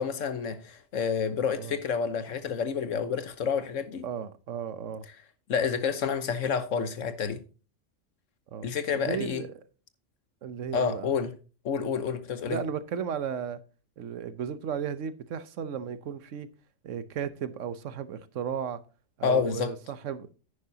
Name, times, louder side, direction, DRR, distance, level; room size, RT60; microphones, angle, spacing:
voice 1, 0.0-4.0 5.5-7.4 8.6-9.4 10.7-11.3 11.6-12.6 19.2-19.7, left 6 dB, 85° left, 1.4 m, -29 dB
voice 2, 4.0-5.1 8.5-8.7 8.9-9.6 10.4-11.1 12.5-13.6 14.0-16.5 16.8-18.8 19.2-20.3, right 7 dB, 80° right, 1.2 m, -34 dB
10.0 x 9.7 x 2.8 m
omnidirectional pair, 1.3 m